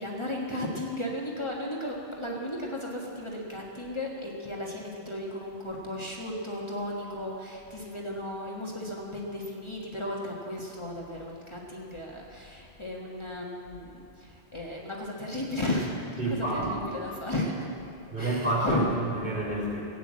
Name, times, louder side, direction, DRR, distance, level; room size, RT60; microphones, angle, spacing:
voice 1, 0.0-17.7 18.2-19.0, left 1 dB, 25° left, -3 dB, 1.6 m, -34 dB
voice 2, 16.2-17.0 18.1-19.8, right 2 dB, 55° right, -5 dB, 3.9 m, -29 dB
16.0 x 9.2 x 7.6 m, 2.6 s
omnidirectional pair, 1.1 m